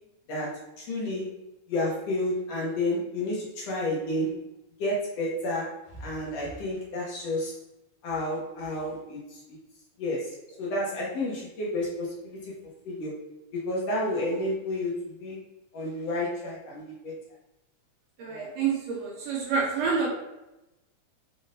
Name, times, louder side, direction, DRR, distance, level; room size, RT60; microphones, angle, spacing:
voice 1, 0.3-1.3 1.7-4.5 4.8-5.7 6.0-7.5 8.0-9.4 10.0-12.6 12.9-13.2 13.5-15.4 15.7-17.1 18.3-18.5, left 1 dB, 65° left, -4 dB, 1.9 m, -31 dB
voice 2, 18.2-20.1, right 5 dB, 75° right, -1 dB, 1.7 m, -28 dB
5.1 x 3.7 x 2.6 m, 0.93 s
omnidirectional pair, 3.4 m